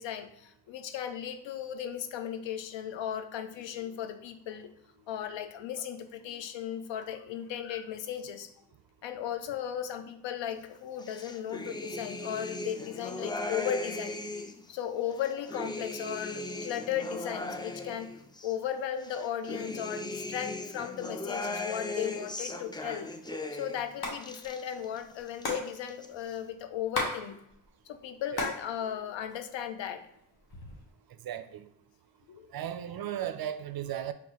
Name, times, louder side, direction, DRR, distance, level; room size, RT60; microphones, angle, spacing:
voice 1, 0.0-4.7 5.1-8.5 9.0-14.2 14.7-18.1 18.4-23.1 23.5-27.4 27.9-30.1 32.3-32.5, left 9 dB, 80° left, 0.6 m, -36 dB
sound 1, 11.0-14.6 15.1-18.5 19.0-23.8 24.1-25.0 25.3-26.1, left 2 dB, 10° left, 0.4 m, -38 dB
Hands, 24.0-24.2 24.4-24.5 24.7-27.2 27.5-28.6 29.0-29.8 30.3-30.9, left 2 dB, 55° left, 1.3 m, -35 dB
voice 2, 31.2-31.7 32.5-34.1, right 11 dB, 55° right, 0.5 m, -35 dB
4.7 x 3.6 x 2.9 m
cardioid pair, 55°, 44 cm